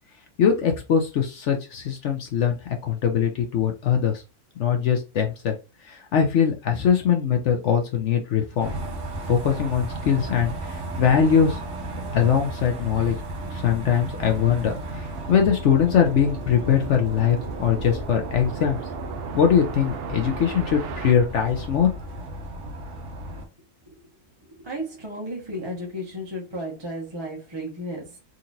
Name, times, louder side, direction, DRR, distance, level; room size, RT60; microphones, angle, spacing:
voice 1, 0.4-2.6 2.8-4.2 4.6-5.6 5.9-8.7 9.3-11.6 12.1-13.2 13.5-18.8 19.3-21.9, left 8 dB, 60° left, 0.8 m, -22 dB
sound 1, 8.6-23.4, right 1 dB, 55° right, 1.3 m, -34 dB
sound 2, 14.7-21.1, right 8 dB, 85° right, 0.5 m, -37 dB
voice 2, 24.5-28.2, equal, 20° right, 0.9 m, -34 dB
3.8 x 2.9 x 2.5 m
omnidirectional pair, 1.6 m